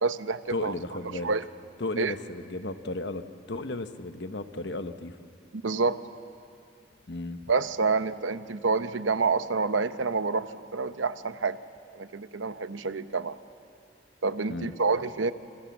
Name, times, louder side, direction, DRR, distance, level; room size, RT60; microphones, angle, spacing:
voice 1, 0.0-0.7 1.1-1.4 2.0-2.1 5.5-6.0 7.5-11.6 11.9-13.3 14.2-15.3, right 4 dB, 85° right, 12 dB, 0.9 m, -28 dB
voice 2, 0.5-1.3 1.8-5.1 7.1-7.5 14.5-14.7, left 2 dB, 65° left, 9 dB, 1.1 m, -34 dB
28.0 x 26.5 x 7.2 m, 2.5 s
head